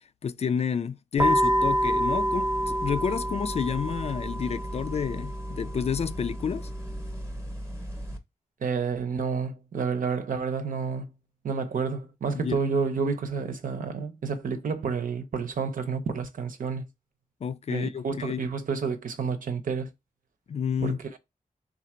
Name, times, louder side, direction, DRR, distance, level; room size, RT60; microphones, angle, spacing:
voice 1, 0.2-6.7 12.3-12.6 17.4-18.4 20.5-21.0, left 7 dB, 50° left, 0.4 m, -30 dB
sound 1, 1.2-8.2, equal, 20° right, 0.9 m, -28 dB
voice 2, 8.6-11.1 11.4-16.8 17.7-19.9 20.8-21.2, right 5 dB, 75° right, 0.8 m, -30 dB
3.9 x 2.5 x 4.3 m
wide cardioid pair, 130°, 14 cm